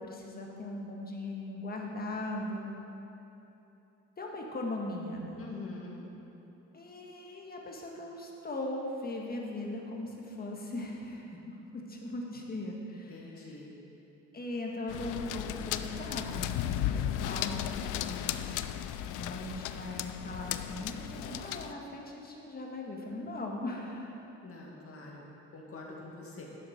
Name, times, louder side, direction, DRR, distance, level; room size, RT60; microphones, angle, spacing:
voice 1, 0.0-2.7 4.2-5.4 6.7-13.6 14.3-16.6 16.8-18.3 19.2-24.3, left 2 dB, 30° left, -1 dB, 1.7 m, -39 dB
voice 2, 5.4-6.0 13.1-13.7 24.4-26.5, left 3 dB, 45° left, -2 dB, 2.2 m, -45 dB
sound 1, 14.9-21.7, left 11 dB, 90° left, 0.5 m, -35 dB
10.5 x 7.2 x 5.2 m, 3.0 s
cardioid pair, 90°, 30 cm